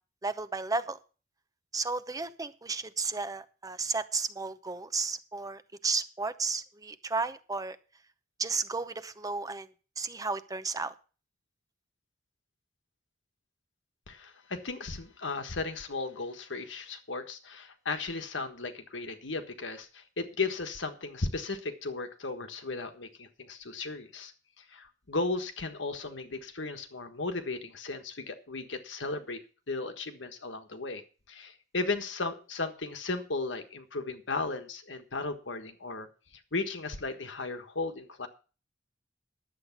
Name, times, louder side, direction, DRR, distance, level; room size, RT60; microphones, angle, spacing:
voice 1, 0.2-1.0 1.7-7.8 8.4-9.7 10.0-10.9, right 4 dB, 20° right, 13 dB, 0.6 m, -33 dB
voice 2, 14.1-24.3 24.6-29.4 29.7-31.0 31.3-36.1 36.5-38.3, left 3 dB, 85° left, 7 dB, 1.5 m, -35 dB
10.5 x 8.1 x 5.9 m, 0.36 s
head